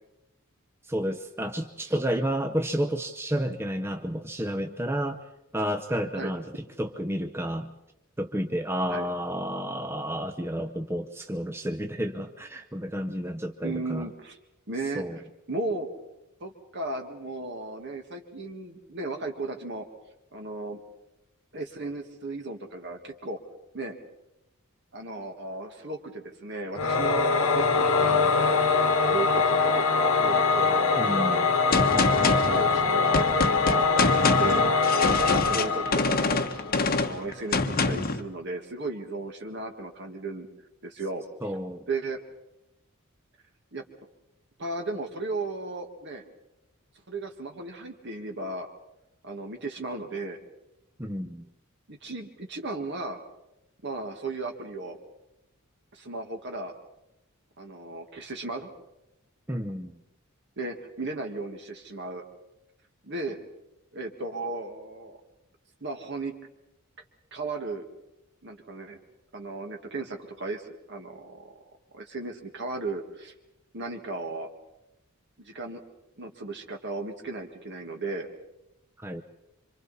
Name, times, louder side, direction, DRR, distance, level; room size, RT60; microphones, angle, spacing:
voice 1, 0.9-5.2 5.5-7.7 8.2-14.1 15.0-15.2 31.0-31.5 35.5-35.6 41.4-41.9 51.0-51.5 59.5-60.0 79.0-79.2, equal, 10° right, 6 dB, 0.7 m, -31 dB
voice 2, 13.6-14.4 14.7-15.0 15.5-15.9 16.4-19.9 20.3-20.8 21.5-23.4 23.7-24.0 24.9-28.6 29.0-29.9 30.2-31.6 32.4-36.6 36.9-40.5 40.8-41.2 41.9-42.2 43.7-43.8 44.6-46.2 47.1-48.7 49.2-50.4 51.9-53.2 53.8-55.0 55.9-56.7 57.6-58.7 60.6-62.2 63.0-63.4 63.9-65.2 65.8-66.3 67.3-67.8 68.4-69.0 69.3-71.6 71.9-73.3 73.7-74.5 75.4-75.8 76.2-78.3, right 2 dB, 55° right, 4 dB, 1.9 m, -35 dB
Singing / Musical instrument, 26.8-36.8, left 4 dB, 75° left, 1.4 m, -23 dB
Gunshot gunfire, 31.7-38.2, left 3 dB, 45° left, 1.1 m, -26 dB
27.0 x 25.5 x 4.2 m, 0.90 s
head